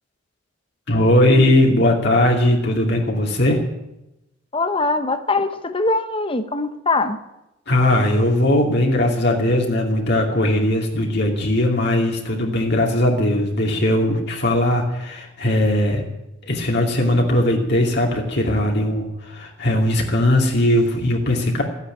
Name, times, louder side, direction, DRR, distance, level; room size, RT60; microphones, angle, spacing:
voice 1, 0.9-3.6 7.7-16.0 16.4-21.6, left 1 dB, 55° left, -1 dB, 2.6 m, -19 dB
voice 2, 4.5-7.2, left 3 dB, 25° left, 9 dB, 0.9 m, -22 dB
15.0 x 9.7 x 9.1 m, 0.92 s
head